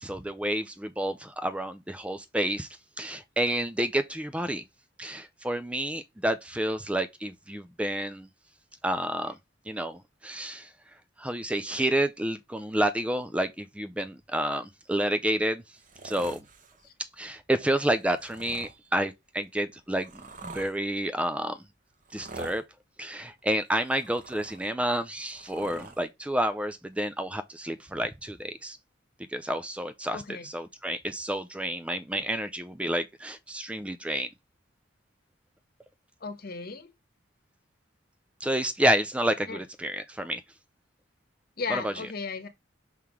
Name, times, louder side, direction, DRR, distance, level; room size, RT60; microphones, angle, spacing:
voice 1, 0.0-2.7 3.0-4.6 5.0-8.3 8.8-9.3 9.7-10.7 11.2-15.6 16.0-16.4 17.2-21.6 22.1-22.6 23.0-28.8 29.3-34.3 38.4-40.4 41.7-41.9, right 1 dB, 5° right, 0.4 m, -29 dB
sound 1, 15.8-16.9 18.0-18.8 19.5-20.8 22.0-22.6 23.6-24.7 25.1-26.0 27.0-27.1, right 3 dB, 40° right, 1.1 m, -45 dB
voice 2, 30.1-30.5 36.2-36.9 39.5-39.6 41.6-42.5, left 4 dB, 50° left, 1.0 m, -35 dB
5.8 x 3.7 x 4.8 m
head